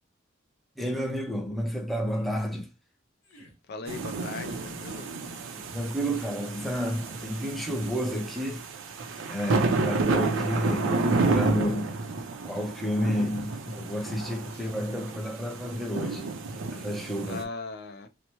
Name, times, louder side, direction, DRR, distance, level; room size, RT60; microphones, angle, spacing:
voice 1, 0.8-2.7 5.7-8.6 9.3-11.9 12.4-16.3 16.7-17.4, equal, ahead, 0.5 m, -30 dB
sound 1, 2.1-2.5 3.2-3.6 4.3-4.7 5.5-5.9 6.6-6.8 7.6-8.0, right 1 dB, 85° left, 0.9 m, -51 dB
voice 2, 3.7-5.1 14.5-14.7 17.3-18.1, left 3 dB, 55° left, 0.4 m, -39 dB
sound 2, 3.9-17.4, right 3 dB, 90° right, 0.5 m, -31 dB
2.9 x 2.0 x 2.9 m
head